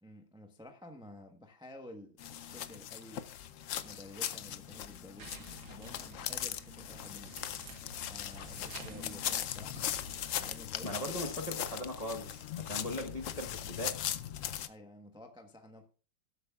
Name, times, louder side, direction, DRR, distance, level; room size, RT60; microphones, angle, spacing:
voice 1, 0.0-3.3 3.8-7.4 8.1-11.8 14.7-15.9, left 1 dB, 5° right, 0.6 m, -52 dB
sound 1, 2.2-14.7, left 11 dB, 80° left, 0.7 m, -39 dB
sound 2, 5.2-10.6, right 5 dB, 85° right, 2.3 m, -52 dB
voice 2, 10.8-14.0, left 1 dB, 25° left, 0.9 m, -39 dB
20.0 x 8.2 x 2.4 m
omnidirectional pair, 2.1 m